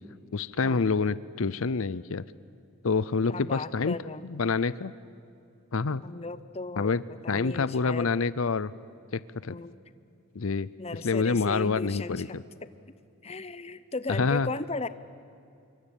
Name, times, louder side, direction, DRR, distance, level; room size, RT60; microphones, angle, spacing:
voice 1, 0.3-2.2 2.8-4.0 4.2-4.9 5.7-6.0 6.8-7.0 7.3-8.7 9.1-9.6 10.3-10.7 11.0-12.4 14.2-14.5, left 4 dB, 70° left, 18 dB, 0.6 m, -27 dB
voice 2, 3.3-4.2 6.0-8.1 9.5-9.7 10.8-12.4 13.2-14.9, left 3 dB, 30° left, 14 dB, 0.8 m, -36 dB
26.5 x 24.0 x 9.0 m, 2.6 s
head